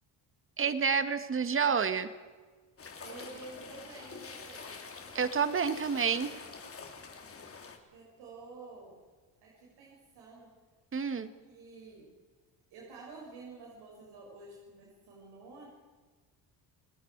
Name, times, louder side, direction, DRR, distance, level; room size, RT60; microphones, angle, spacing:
voice 1, 0.6-2.1 5.1-6.3 10.9-11.3, right 6 dB, 30° right, 11 dB, 1.8 m, -29 dB
sound 1, 2.8-7.8, left 5 dB, 35° left, 3.3 m, -46 dB
voice 2, 3.0-4.8 7.9-9.0 9.4-10.6 11.5-12.1 12.7-15.7, right 3 dB, 75° right, -3 dB, 6.7 m, -50 dB
30.0 x 18.0 x 4.8 m, 1.4 s
cardioid pair, 95°, 40 cm